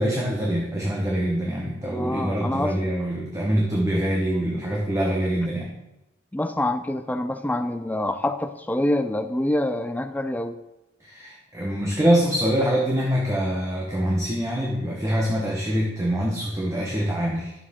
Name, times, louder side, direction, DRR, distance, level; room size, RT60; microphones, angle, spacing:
voice 1, 0.0-5.7 11.0-17.5, equal, 15° right, -2 dB, 1.0 m, -24 dB
voice 2, 1.9-2.9 6.3-10.6, left 1 dB, 10° left, 9 dB, 0.4 m, -26 dB
11.0 x 7.1 x 3.7 m, 0.96 s
head